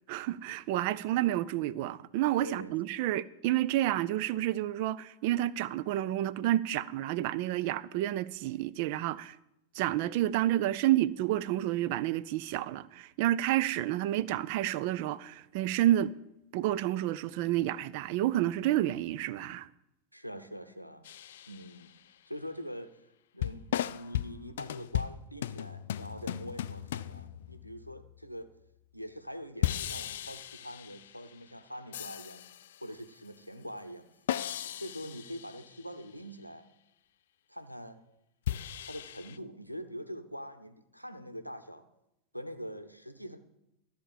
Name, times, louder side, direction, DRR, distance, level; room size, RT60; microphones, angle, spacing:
voice 1, 0.1-9.4 9.7-16.1 16.5-19.7, right 14 dB, 45° right, 0.4 m, -30 dB
voice 2, 2.4-2.8 20.1-21.0 21.5-21.9 22.3-23.0 23.3-28.5 28.9-32.5 32.8-34.1 34.6-36.7 37.5-38.0 38.8-41.8 42.3-43.4, equal, 90° left, 0.7 m, -44 dB
sound 1, 21.0-22.0 23.4-28.4 29.6-31.4 31.9-32.8 34.3-36.0 38.5-39.4, left 11 dB, 60° left, 0.3 m, -36 dB
13.0 x 4.4 x 7.2 m
figure-of-eight pair, 90°, 0 cm